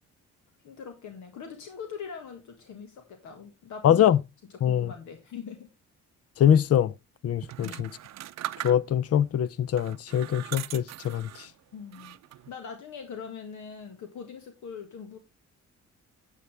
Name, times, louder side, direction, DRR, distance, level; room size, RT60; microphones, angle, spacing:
voice 1, 0.6-4.1 4.6-5.7 7.6-7.9 11.7-12.2 12.5-15.2, left 6 dB, 75° left, 1.9 m, -42 dB
voice 2, 3.8-4.2 4.6-4.9 6.4-6.9 7.2-7.9 8.6-11.5, left 10 dB, 55° left, 0.7 m, -23 dB
sound 1, 7.4-9.2 9.7-11.5 11.9-12.5, right 13 dB, 60° right, 0.6 m, -40 dB
9.6 x 8.5 x 3.4 m
cardioid pair, 90°, 30 cm